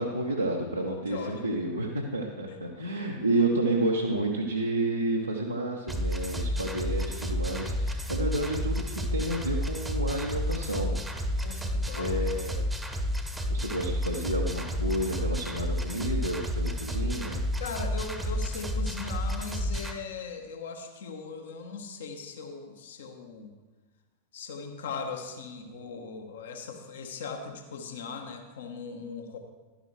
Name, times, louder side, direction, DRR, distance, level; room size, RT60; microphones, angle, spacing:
voice 1, 0.0-11.0 12.0-12.6 13.5-17.5, right 1 dB, 90° right, -2 dB, 0.9 m, -30 dB
voice 2, 0.9-1.4 2.5-2.6 11.4-12.2 17.6-23.5 24.3-29.4, left 5 dB, 60° left, 4 dB, 1.2 m, -39 dB
sound 1, 5.9-19.9, equal, 5° right, 0.9 m, -31 dB
11.5 x 10.5 x 3.2 m, 1.3 s
figure-of-eight pair, 90°, 0 cm